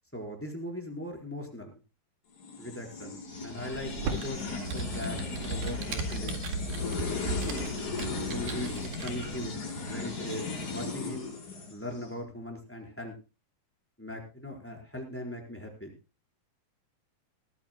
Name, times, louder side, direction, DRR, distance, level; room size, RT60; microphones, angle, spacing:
voice 1, 0.1-1.8 2.6-6.4 6.8-7.7 8.2-9.5 9.9-11.3 11.7-13.1 14.0-15.9, left 1 dB, 5° left, 1 dB, 4.1 m, -40 dB
sound 1, 2.4-12.1, left 3 dB, 55° left, 6.2 m, -36 dB
Computer keyboard, 3.7-9.5, right 4 dB, 90° right, 3.7 m, -37 dB
20.5 x 15.0 x 2.2 m, 0.31 s
omnidirectional pair, 4.0 m